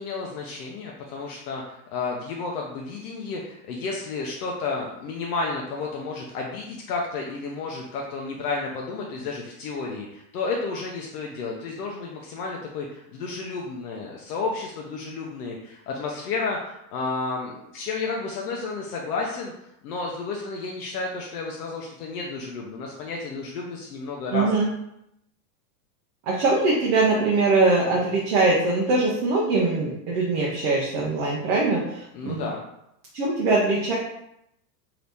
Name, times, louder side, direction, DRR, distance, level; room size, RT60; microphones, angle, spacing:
voice 1, 0.0-19.5 19.8-24.5 32.1-32.6, left 4 dB, 65° left, -1 dB, 0.7 m, -31 dB
voice 2, 24.3-24.7 26.3-32.4 33.1-33.9, right 3 dB, 40° right, -4 dB, 0.6 m, -22 dB
2.8 x 2.6 x 3.3 m, 0.80 s
supercardioid pair, 145°, 49 cm